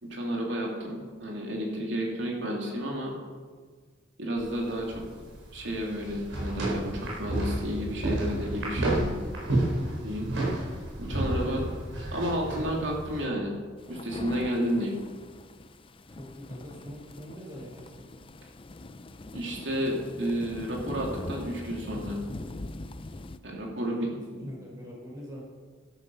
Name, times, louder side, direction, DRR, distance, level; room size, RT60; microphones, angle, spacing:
voice 1, 0.0-3.1 4.2-5.0 5.5-9.1 10.0-10.3 11.0-11.6 12.1-13.5 13.9-14.9 19.3-22.2 23.4-24.1 24.3-24.5, equal, 65° right, -1 dB, 3.1 m, -31 dB
sound 1, 4.4-13.3, right 1 dB, 80° right, 4.9 m, -31 dB
voice 2, 11.0-11.6 12.4-12.9 16.1-18.0 23.8-25.4, equal, 20° right, -4 dB, 4.8 m, -43 dB
sound 2, 13.8-23.4, left 2 dB, 25° left, 0.5 m, -42 dB
12.5 x 12.0 x 5.6 m, 1.5 s
head